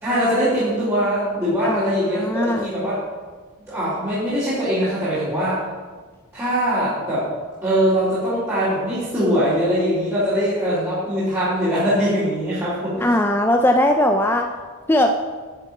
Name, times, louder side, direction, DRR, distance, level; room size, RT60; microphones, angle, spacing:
voice 1, 0.0-3.0 3.7-5.6 6.3-7.2 7.6-13.0, equal, 15° right, -14 dB, 4.1 m, -22 dB
voice 2, 1.6-2.7 13.0-14.5 14.9-15.1, left 1 dB, 10° left, 3 dB, 0.5 m, -19 dB
10.5 x 6.8 x 7.1 m, 1.4 s
head